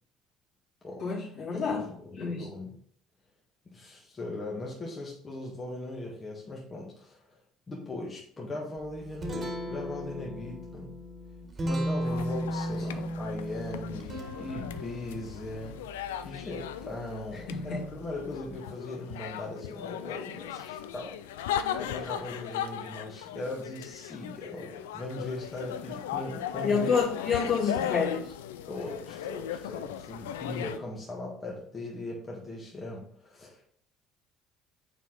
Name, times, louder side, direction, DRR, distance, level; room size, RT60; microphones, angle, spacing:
voice 1, 1.0-1.8 2.2-2.5 17.5-17.8 26.6-28.3, left 5 dB, 55° left, -4 dB, 2.3 m, -28 dB
voice 2, 1.5-2.7 3.7-7.4 7.7-10.9 11.6-15.8 16.2-21.1 21.8-26.9 28.7-33.6, left 2 dB, 30° left, -3 dB, 1.6 m, -39 dB
Guitar, 8.8-18.5, right 1 dB, 35° right, 1.6 m, -37 dB
sound 1, 12.0-30.8, left 9 dB, 80° left, 0.3 m, -37 dB
5.7 x 4.5 x 3.8 m, 0.63 s
hypercardioid pair, 60°, 0 cm